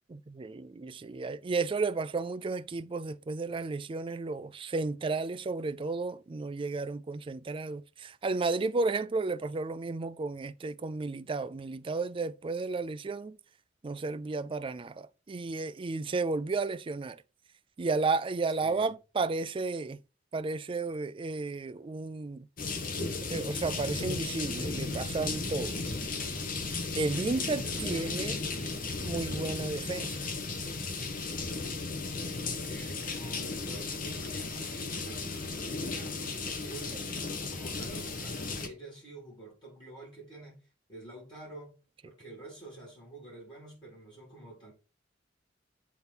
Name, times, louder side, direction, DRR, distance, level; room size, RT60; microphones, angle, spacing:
voice 1, 0.1-13.4 13.8-17.2 17.8-20.0 20.3-22.5 23.3-26.0 27.0-28.4 29.0-30.2, right 3 dB, 30° right, 0.4 m, -33 dB
voice 2, 18.6-18.9 27.2-28.4 32.5-35.3 35.6-41.8 42.0-44.7, right 2 dB, 25° left, 4.2 m, -48 dB
sound 1, 22.6-38.7, left 3 dB, 50° left, 1.0 m, -35 dB
8.0 x 3.6 x 4.4 m
head